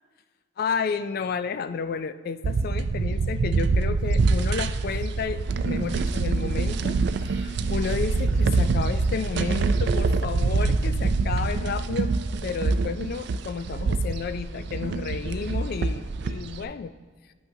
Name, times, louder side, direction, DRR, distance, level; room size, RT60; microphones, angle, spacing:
voice 1, 0.6-12.1 12.4-16.9, left 5 dB, 50° left, 12 dB, 0.3 m, -31 dB
sound 1, 2.4-16.6, right 3 dB, 60° right, 0.4 m, -25 dB
10.0 x 5.7 x 2.7 m, 1.5 s
head